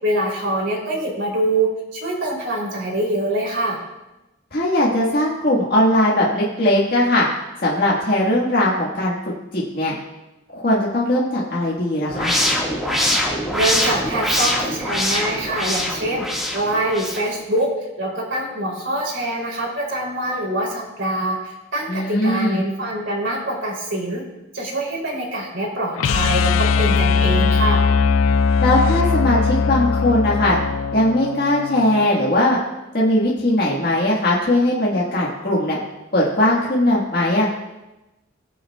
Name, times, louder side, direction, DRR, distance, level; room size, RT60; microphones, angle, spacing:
voice 1, 0.0-3.8 13.5-17.7 18.0-24.2 24.5-26.5 26.8-27.8, right 1 dB, 60° right, -2 dB, 3.1 m, -24 dB
voice 2, 4.5-7.3 7.6-9.1 9.5-9.9 10.5-12.3 21.9-22.6 28.6-30.6 30.9-32.6 32.9-35.8 36.1-37.5, left 1 dB, 45° left, -5 dB, 1.6 m, -19 dB
sound 1, 12.1-17.3, left 1 dB, ahead, 1.7 m, -23 dB
sound 2, 26.0-32.1, left 5 dB, 85° left, 0.4 m, -19 dB
20.0 x 7.0 x 2.3 m, 1.0 s
head